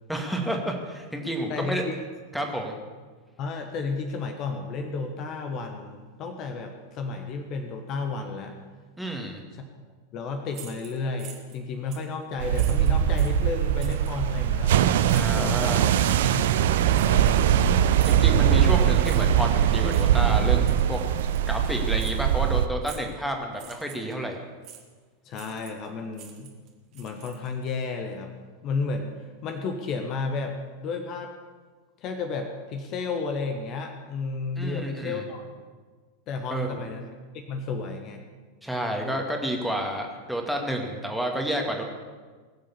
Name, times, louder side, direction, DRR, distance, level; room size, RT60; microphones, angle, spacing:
voice 1, 0.1-1.8 2.3-2.7 9.0-9.4 15.1-15.9 18.0-21.0 21.5-24.4 34.6-35.2 36.5-36.8 38.6-41.8, right 1 dB, ahead, 1 dB, 2.1 m, -30 dB
voice 2, 1.5-1.9 3.4-8.5 9.5-9.6 10.1-14.8 15.0-15.8 16.2-17.9 25.2-26.5 26.9-28.3 28.6-29.2 29.4-31.3 32.0-35.4 36.3-37.1 37.5-38.2, left 4 dB, 35° left, 4 dB, 1.5 m, -32 dB
sound 1, 10.5-11.6 11.9-12.1 12.5-13.4 13.8-14.2 15.1-15.4 16.0-16.2 16.9-17.6 18.0-18.3 19.0-19.4 19.9-20.1 20.7-21.0 21.3-21.5 22.0-22.2 22.8-23.1 23.5-24.1 24.6-24.8 25.3-25.9 26.1-27.6, right 9 dB, 40° right, 2.0 m, -46 dB
sound 2, 12.4-22.7, right 10 dB, 55° right, 0.7 m, -21 dB
20.0 x 7.7 x 7.1 m, 1.4 s
figure-of-eight pair, 90°, 0 cm